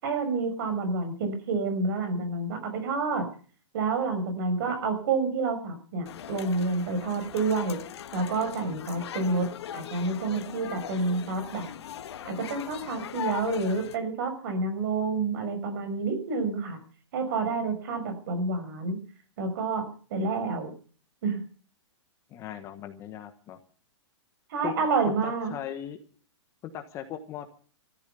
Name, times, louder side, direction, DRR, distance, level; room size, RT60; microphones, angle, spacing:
voice 1, 0.0-3.3 3.7-7.8 8.1-9.5 9.7-11.7 12.2-16.8 17.1-19.0 19.4-20.7 21.2-21.4 24.5-25.5, right 3 dB, 45° right, 8 dB, 5.7 m, -29 dB
sound 1, 6.1-14.0, left 10 dB, 60° left, 1.6 m, -39 dB
voice 2, 22.3-23.6 24.6-24.7 25.0-26.0 26.6-27.5, left 10 dB, 20° left, 8 dB, 1.2 m, -38 dB
14.0 x 13.5 x 6.9 m, 0.41 s
hypercardioid pair, 165°, 16 cm